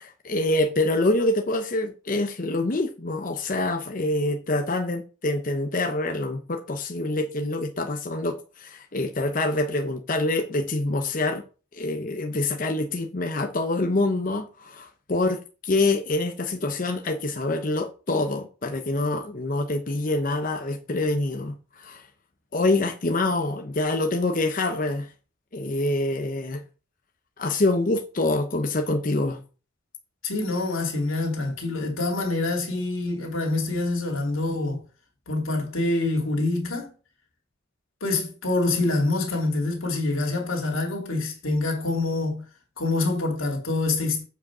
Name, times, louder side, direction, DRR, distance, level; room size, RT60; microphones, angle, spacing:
voice 1, 0.0-11.4 11.7-22.0 22.5-25.1 25.5-26.6 27.4-29.4, left 2 dB, 40° left, 0.8 m, -26 dB
voice 2, 30.2-34.8 35.3-36.9 38.0-42.4 42.8-44.2, left 2 dB, 85° left, 2.9 m, -26 dB
8.0 x 4.9 x 6.1 m
head